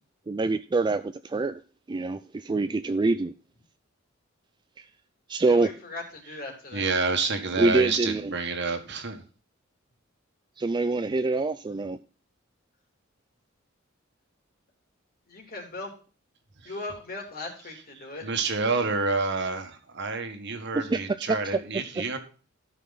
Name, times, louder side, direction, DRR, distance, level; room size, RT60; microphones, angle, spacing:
voice 1, 0.3-1.6 1.9-3.3 4.8-4.9 5.3-5.7 7.6-8.3 10.6-12.0 20.7-21.0 22.0-22.1, right 3 dB, 20° right, 11 dB, 0.3 m, -25 dB
voice 2, 5.4-6.8 15.3-15.9 16.6-18.3, left 2 dB, 45° left, 2 dB, 3.1 m, -38 dB
voice 3, 6.7-9.2 16.6-16.7 18.0-22.2, right 4 dB, 60° right, 6 dB, 1.6 m, -28 dB
13.0 x 5.8 x 4.0 m, 0.38 s
head